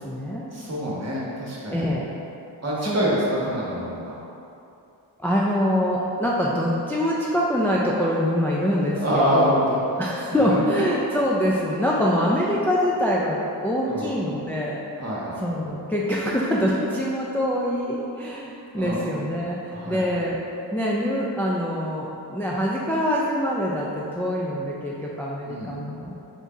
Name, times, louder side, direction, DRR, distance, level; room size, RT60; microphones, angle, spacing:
voice 1, 0.0-0.5 1.7-2.1 2.9-3.1 5.2-9.0 9.3-9.6 10.0-14.8 15.4-20.4 20.7-26.1, equal, 5° left, -5 dB, 0.3 m, -24 dB
voice 2, 0.5-1.9 2.6-4.1 8.9-9.8 10.3-10.6 13.9-14.1 15.0-15.4 18.7-19.0 19.7-20.1 25.5-25.7, equal, 35° right, -6 dB, 1.1 m, -26 dB
5.0 x 3.8 x 2.7 m, 2.7 s
wide cardioid pair, 95°, 45 cm